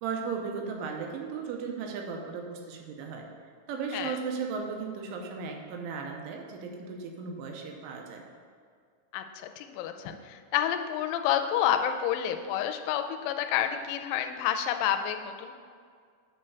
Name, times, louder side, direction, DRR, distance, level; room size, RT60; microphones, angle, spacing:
voice 1, 0.0-3.3 3.7-8.2, right 5 dB, 90° right, 2 dB, 3.3 m, -36 dB
voice 2, 9.6-15.5, left 10 dB, 90° left, 7 dB, 3.0 m, -29 dB
8.6 x 3.3 x 6.6 m, 2.1 s
omnidirectional pair, 5.5 m